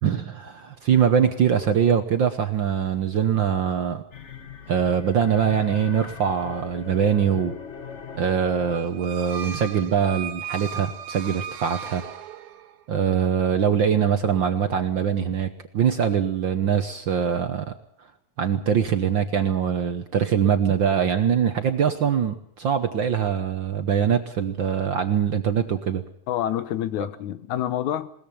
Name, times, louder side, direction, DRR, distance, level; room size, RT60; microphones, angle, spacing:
voice 1, 0.0-4.0 4.7-7.5 8.1-12.0 12.9-17.7 18.4-26.0, right 8 dB, 60° right, 8 dB, 1.3 m, -23 dB
sound 1, 4.1-9.0, left 6 dB, 60° left, 0.7 m, -40 dB
sound 2, 8.7-12.8, right 8 dB, 80° right, 2.4 m, -36 dB
voice 2, 26.3-28.1, left 11 dB, 85° left, 14 dB, 2.5 m, -27 dB
21.0 x 19.0 x 7.2 m, 0.64 s
omnidirectional pair, 3.3 m